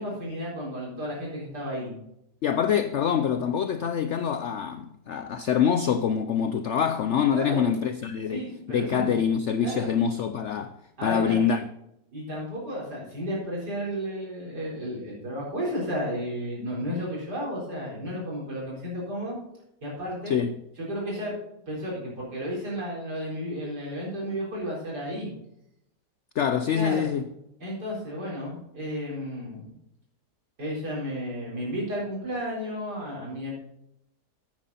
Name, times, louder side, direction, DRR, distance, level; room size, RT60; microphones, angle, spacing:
voice 1, 0.0-1.9 7.3-7.6 8.3-9.1 9.6-9.9 11.0-11.4 12.1-19.4 19.8-20.3 20.8-21.3 21.7-25.3 26.7-27.1 27.6-29.7 30.6-33.5, equal, 70° right, 4.8 m, -33 dB
voice 2, 2.4-11.7 20.3-20.5 26.4-27.2, left 7 dB, 70° left, 0.6 m, -25 dB
9.3 x 9.3 x 4.2 m
omnidirectional pair, 1.8 m